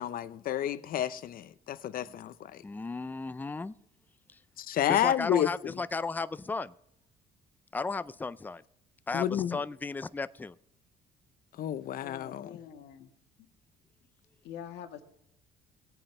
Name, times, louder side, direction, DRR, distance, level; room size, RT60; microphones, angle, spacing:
voice 1, 0.0-2.6 4.6-5.7 9.1-9.6 11.6-12.6, left 11 dB, 60° left, 0.8 m, -30 dB
voice 2, 2.6-3.7 4.9-6.7 7.7-8.6 9.1-10.5, left 3 dB, 10° left, 0.4 m, -35 dB
voice 3, 12.0-13.1 14.4-15.0, left 9 dB, 85° left, 1.6 m, -45 dB
19.5 x 8.8 x 3.3 m
cardioid pair, 110°, 17 cm